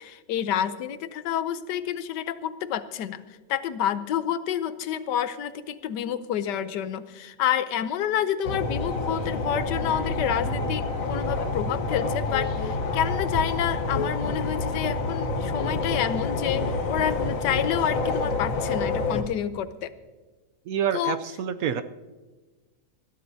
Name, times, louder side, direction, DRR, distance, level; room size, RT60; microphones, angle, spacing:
voice 1, 0.0-3.2 3.5-19.9 20.9-21.2, left 9 dB, 85° left, 12 dB, 1.4 m, -29 dB
sound 1, 8.4-19.2, left 3 dB, 55° left, 1.4 m, -28 dB
voice 2, 20.7-21.8, right 8 dB, 70° right, 11 dB, 0.9 m, -27 dB
20.5 x 14.5 x 2.7 m, 1.3 s
omnidirectional pair, 1.8 m